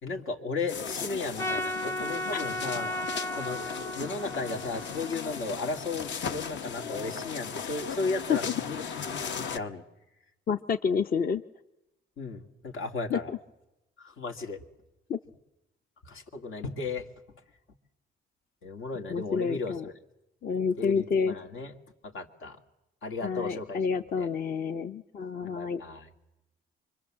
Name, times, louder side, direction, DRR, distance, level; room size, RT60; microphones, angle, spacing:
voice 1, 0.0-2.9 3.3-3.6 3.9-9.8 12.2-13.3 14.0-14.6 16.0-17.1 18.6-19.9 20.8-21.7 22.0-22.6 23.0-23.8 24.2-24.3 25.4-26.1, left 3 dB, 85° left, 3 dB, 2.5 m, -35 dB
sound 1, 0.7-9.6, left 6 dB, 65° left, 1.2 m, -37 dB
Trumpet, 1.4-5.8, left 1 dB, 10° left, 0.8 m, -35 dB
voice 2, 10.5-11.4 13.1-13.4 15.1-15.2 19.1-19.8 20.4-21.3 23.2-25.8, left 6 dB, 45° left, 8 dB, 0.8 m, -29 dB
25.0 x 24.5 x 7.5 m, 0.95 s
cardioid pair, 90°, 20 cm